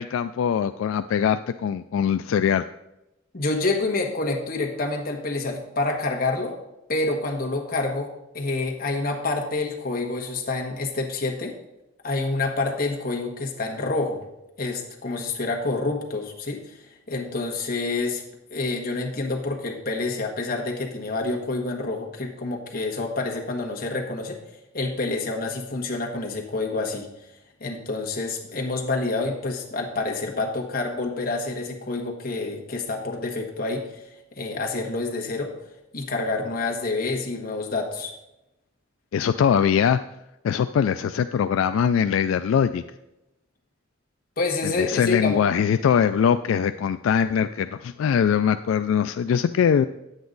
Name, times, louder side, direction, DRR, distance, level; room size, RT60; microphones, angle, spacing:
voice 1, 0.0-2.6 39.1-40.0 40.4-42.8 44.8-49.9, left 7 dB, 80° left, 10 dB, 0.3 m, -22 dB
voice 2, 3.3-6.6 6.9-11.5 12.0-14.2 14.6-18.2 18.5-24.4 24.7-27.1 27.6-34.0 34.3-35.5 35.9-38.1 44.4-45.4, left 3 dB, 45° left, 1 dB, 1.4 m, -28 dB
9.4 x 8.0 x 3.9 m, 0.91 s
head